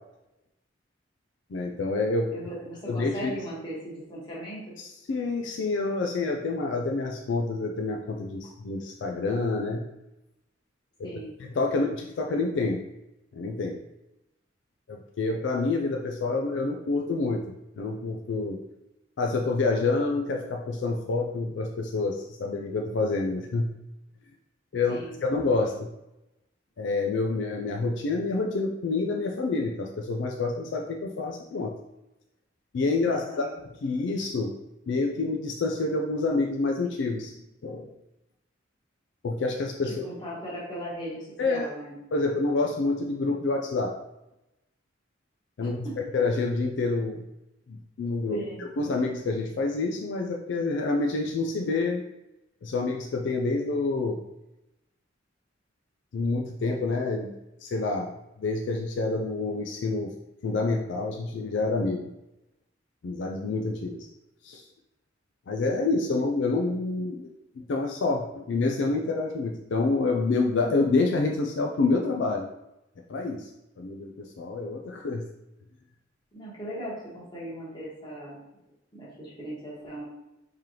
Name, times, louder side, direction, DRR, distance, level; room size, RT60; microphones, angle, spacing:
voice 1, 1.5-2.3 2.9-3.4 4.8-9.9 11.0-11.1 11.6-12.8 13.3-13.8 14.9-18.6 19.2-23.8 24.7-25.9 26.8-31.7 32.7-34.6 34.9-37.3 37.6-37.9 39.2-39.9 41.4-41.7 42.1-43.9 45.6-45.8 46.1-47.2 47.7-48.4 48.8-52.0 52.6-54.2 56.1-57.3 57.6-58.1 58.4-60.1 60.4-62.1 63.0-64.1 64.4-64.7 65.5-67.3 67.6-72.5 73.1-73.5 73.8-75.3, left 3 dB, 65° left, 2 dB, 0.4 m, -28 dB
voice 2, 2.3-4.7 11.0-11.3 24.9-25.1 33.1-33.5 40.0-42.0 45.6-46.0 48.3-48.7 76.3-78.4 78.9-80.0, equal, 25° left, -7 dB, 1.3 m, -38 dB
3.7 x 3.2 x 2.9 m, 0.91 s
head